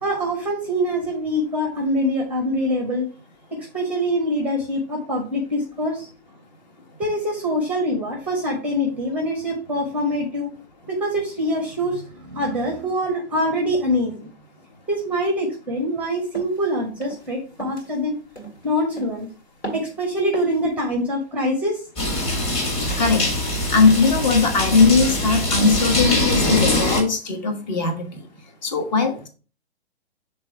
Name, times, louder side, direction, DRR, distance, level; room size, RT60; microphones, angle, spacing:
voice 1, 0.0-3.1 3.7-6.1 7.0-10.5 10.9-14.3 14.9-18.1 18.6-19.3 19.7-21.8, equal, 5° right, 2 dB, 0.6 m, -24 dB
sound 1, 16.3-16.6 17.0-17.3 17.6-17.9 18.4-18.7 19.0-19.3 19.6-20.0 20.3-20.6, right 2 dB, 85° left, 2.4 m, -36 dB
sound 2, 22.0-27.0, left 1 dB, 20° left, 1.3 m, -22 dB
voice 2, 23.7-28.0 28.6-29.3, left 4 dB, 40° left, 5 dB, 1.3 m, -19 dB
6.8 x 3.5 x 4.5 m, 0.37 s
figure-of-eight pair, 125°, 33 cm